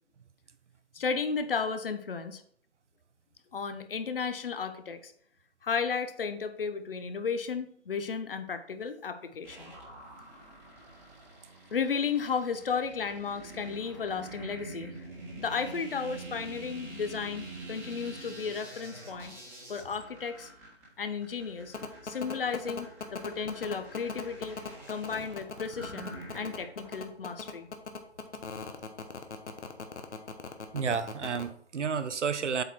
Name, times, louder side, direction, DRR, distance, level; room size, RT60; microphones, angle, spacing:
voice 1, 0.9-2.4 3.5-5.1 5.6-9.7 11.7-15.1 15.4-19.4 19.7-20.5 21.0-21.7 22.0-24.6 24.9-27.7, left 5 dB, 50° left, 10 dB, 0.9 m, -34 dB
sound 1, 9.4-26.9, right 2 dB, 5° right, 1.3 m, -46 dB
sound 2, 21.7-31.4, left 5 dB, 80° left, 1.3 m, -39 dB
voice 2, 30.7-32.6, right 6 dB, 85° right, 12 dB, 0.8 m, -31 dB
8.0 x 4.3 x 4.5 m, 0.63 s
hypercardioid pair, 160°, 35 cm